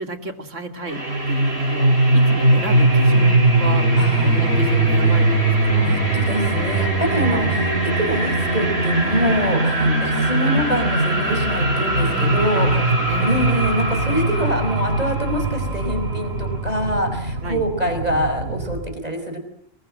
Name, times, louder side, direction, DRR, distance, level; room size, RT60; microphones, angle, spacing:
voice 1, 0.0-3.9 4.2-6.0 7.3-7.6 9.8-10.0 12.0-13.4 17.4-18.6, right 2 dB, 75° right, 7 dB, 2.9 m, -33 dB
sound 1, 0.9-18.8, right 2 dB, 55° right, 7.4 m, -20 dB
voice 2, 4.0-4.8 5.8-12.8 13.2-19.4, equal, 30° right, 6 dB, 5.2 m, -25 dB
28.0 x 21.5 x 7.7 m, 0.64 s
omnidirectional pair, 1.3 m